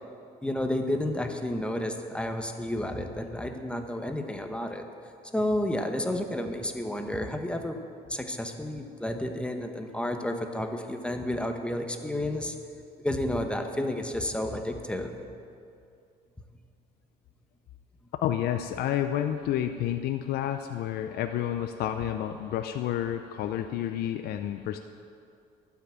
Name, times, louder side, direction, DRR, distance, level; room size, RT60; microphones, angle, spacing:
voice 1, 0.4-4.9 5.3-7.8 8.1-12.6 13.0-15.2, left 1 dB, 5° left, 5 dB, 0.9 m, -31 dB
voice 2, 18.2-24.8, left 11 dB, 70° left, 7 dB, 0.5 m, -30 dB
12.0 x 5.9 x 9.0 m, 2.5 s
cardioid pair, 110°, 17 cm